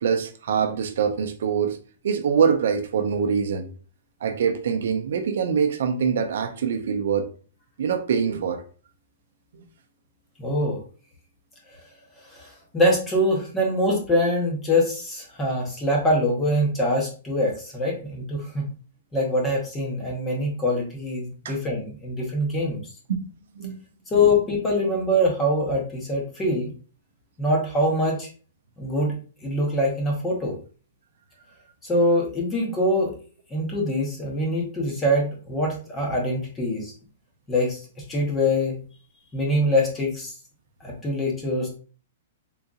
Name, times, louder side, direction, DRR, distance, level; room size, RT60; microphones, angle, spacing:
voice 1, 0.0-1.8 2.0-3.7 4.2-7.3 7.8-8.6 9.5-9.6 21.4-21.6 23.1-23.3 23.6-23.8, right 6 dB, 60° right, 0.5 m, -24 dB
voice 2, 10.4-10.8 12.3-18.7 19.1-22.8 24.1-26.7 27.4-28.3 28.8-29.1 29.4-30.5 31.8-33.1 33.5-36.9 37.5-37.8 38.1-38.8 39.3-40.3 40.8-41.7, left 1 dB, 10° left, 0.7 m, -24 dB
3.7 x 2.8 x 2.3 m
hypercardioid pair, 175°, 0 cm